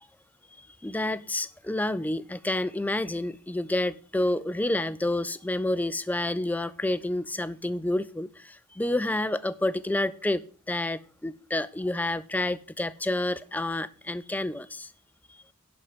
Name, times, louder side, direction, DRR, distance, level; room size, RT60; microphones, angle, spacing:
voice 1, 0.6-14.9, left 1 dB, 5° left, 16 dB, 0.3 m, -29 dB
11.0 x 4.4 x 7.6 m, 0.42 s
head